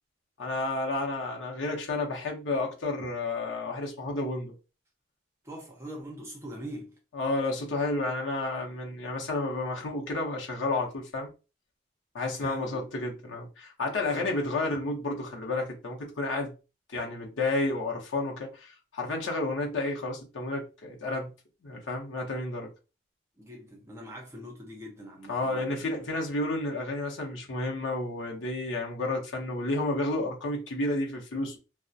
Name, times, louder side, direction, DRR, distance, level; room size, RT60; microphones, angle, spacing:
voice 1, 0.4-4.5 7.1-11.3 12.1-16.5 16.9-21.3 21.6-22.7 25.3-31.6, left 2 dB, 90° left, 0.7 m, -31 dB
voice 2, 5.4-7.0 12.4-12.9 14.0-14.3 23.4-26.0, equal, 15° right, 0.6 m, -42 dB
2.3 x 2.0 x 2.5 m
head